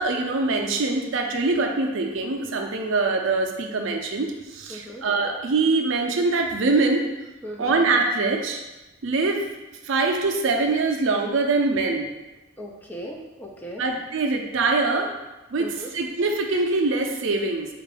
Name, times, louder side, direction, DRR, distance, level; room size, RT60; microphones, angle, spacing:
voice 1, 0.0-7.0 7.6-8.6 9.0-9.4 9.8-12.1 13.8-15.1 15.5-17.7, right 3 dB, 65° right, 2 dB, 0.5 m, -23 dB
voice 2, 4.7-5.0 7.4-7.8 12.6-13.8 15.6-15.9, equal, 10° left, -1 dB, 0.3 m, -37 dB
4.4 x 2.5 x 3.3 m, 1.1 s
head